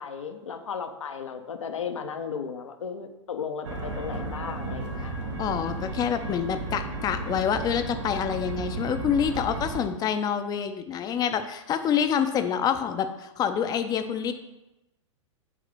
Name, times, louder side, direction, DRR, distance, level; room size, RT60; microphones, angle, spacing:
voice 1, 0.0-5.1, left 6 dB, 75° left, 7 dB, 0.8 m, -35 dB
sound 1, 3.6-9.8, right 2 dB, 65° right, 1.1 m, -34 dB
voice 2, 5.4-14.3, left 8 dB, 25° left, 9 dB, 0.5 m, -27 dB
8.3 x 2.8 x 5.1 m, 0.95 s
figure-of-eight pair, 105°, 16 cm